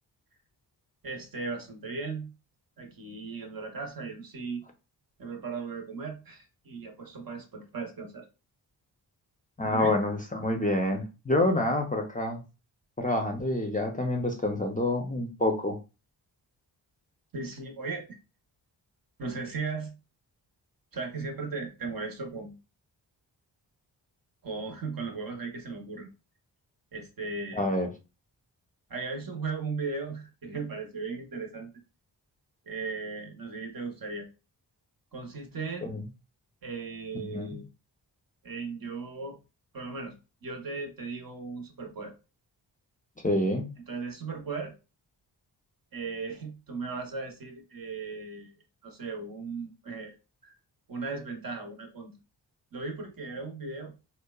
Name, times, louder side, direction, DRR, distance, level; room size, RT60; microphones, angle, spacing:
voice 1, 1.0-2.3 2.8-4.6 5.2-8.3 9.6-10.0 17.3-18.1 19.2-19.9 20.9-22.6 24.4-26.1 26.9-27.7 28.9-31.7 32.7-34.3 35.1-35.9 36.6-37.6 38.4-39.4 39.7-40.2 40.4-42.1 43.9-44.7 45.9-48.5 48.8-50.1 50.4-50.5 50.9-52.2 52.7-53.9, right 4 dB, 50° right, 3 dB, 0.8 m, -37 dB
voice 2, 9.6-12.4 13.0-15.8 27.5-27.9 35.9-36.0 37.2-37.6 43.2-43.7, left 1 dB, 20° left, 3 dB, 0.5 m, -27 dB
2.8 x 2.1 x 2.2 m, 0.30 s
cardioid pair, 55°, 45 cm